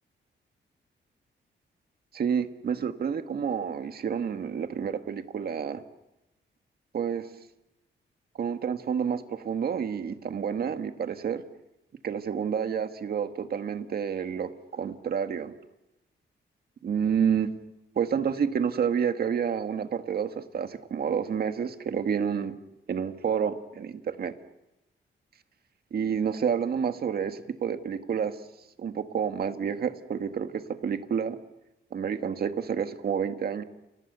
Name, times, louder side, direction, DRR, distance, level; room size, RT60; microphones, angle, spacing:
voice 1, 2.1-5.8 6.9-7.2 8.4-11.4 12.0-15.5 16.8-17.5 18.0-22.5 22.9-24.3 25.9-28.4 28.8-31.4 31.9-33.6, right 7 dB, 50° right, 8 dB, 1.7 m, -29 dB
30.0 x 28.5 x 6.9 m, 0.97 s
wide cardioid pair, 170°, 20 cm